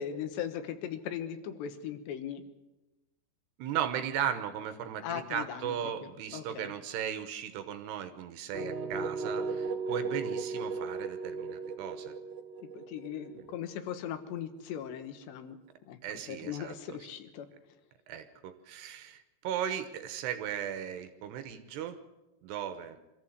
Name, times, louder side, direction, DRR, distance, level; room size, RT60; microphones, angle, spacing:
voice 1, 0.0-2.4 5.0-5.7 6.3-6.7 12.7-15.6 15.9-16.0 16.3-17.5, left 9 dB, 75° left, 8 dB, 3.4 m, -38 dB
voice 2, 3.6-12.1 13.4-13.5 16.0-17.0 18.1-22.0 22.4-23.0, right 9 dB, 70° right, 10 dB, 2.9 m, -36 dB
sound 1, 8.5-14.4, right 4 dB, 55° right, 2.9 m, -36 dB
24.5 x 14.5 x 8.1 m, 1.0 s
omnidirectional pair, 5.2 m